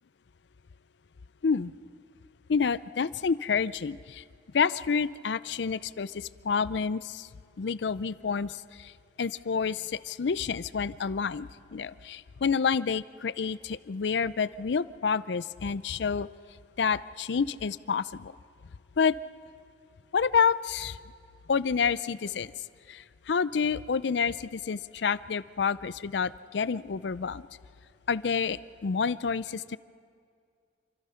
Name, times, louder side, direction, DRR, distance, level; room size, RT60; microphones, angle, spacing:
voice 1, 2.5-4.2 4.5-7.3 7.6-8.9 9.2-16.3 16.8-18.3 19.0-19.2 20.1-21.0 21.5-22.5 22.9-27.4 28.1-29.8, left 6 dB, 75° left, 18 dB, 0.5 m, -28 dB
27.5 x 25.0 x 5.7 m, 2.3 s
head